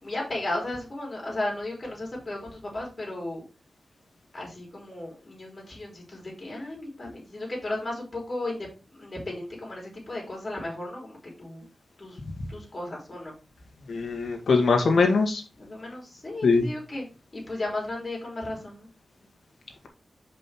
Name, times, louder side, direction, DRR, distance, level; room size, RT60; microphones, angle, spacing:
voice 1, 0.0-3.4 4.3-11.6 12.0-12.2 12.5-13.3 15.6-17.1 17.3-18.9, left 2 dB, 30° left, -2 dB, 3.7 m, -35 dB
voice 2, 13.9-15.4 16.4-16.7, left 4 dB, 70° left, 3 dB, 1.8 m, -21 dB
5.4 x 5.3 x 4.4 m, 0.31 s
wide cardioid pair, 135°, 0 cm